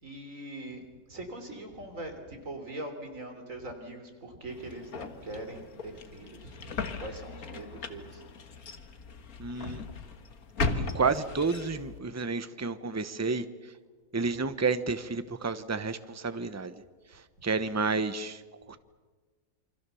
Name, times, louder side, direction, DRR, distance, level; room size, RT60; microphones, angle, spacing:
voice 1, 0.0-6.7 7.0-8.2, right 1 dB, 50° right, 5 dB, 3.8 m, -42 dB
sound 1, 4.5-12.0, left 3 dB, 60° left, 1.9 m, -37 dB
voice 2, 9.4-9.8 10.8-13.5 14.1-16.7 17.4-18.4 18.7-18.8, right 4 dB, 15° right, 11 dB, 0.7 m, -30 dB
28.0 x 24.5 x 7.0 m, 1.4 s
omnidirectional pair, 1.8 m